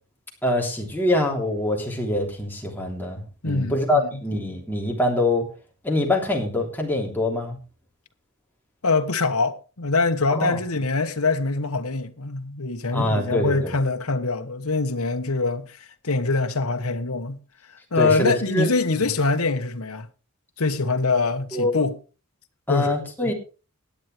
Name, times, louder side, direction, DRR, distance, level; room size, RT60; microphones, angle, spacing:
voice 1, 0.4-5.4 5.8-7.6 10.3-10.6 12.9-13.7 17.9-18.7 21.5-21.8 22.7-23.3, left 1 dB, 10° left, 3.2 m, -24 dB
voice 2, 3.4-4.2 8.8-17.4 17.9-20.1 20.6-22.0 22.7-23.3, left 3 dB, 85° left, 1.2 m, -24 dB
17.0 x 10.5 x 3.3 m
head